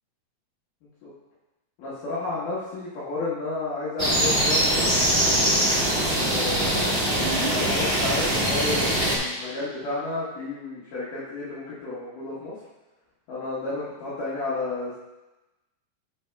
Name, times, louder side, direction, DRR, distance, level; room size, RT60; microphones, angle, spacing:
voice 1, 1.8-4.9 6.3-6.9 7.5-12.5 13.3-15.0, left 3 dB, 70° left, -10 dB, 2.8 m, -31 dB
sound 1, 4.0-9.2, right 1 dB, 40° right, 0.7 m, -22 dB
8.5 x 7.0 x 2.3 m, 1.0 s
omnidirectional pair, 4.0 m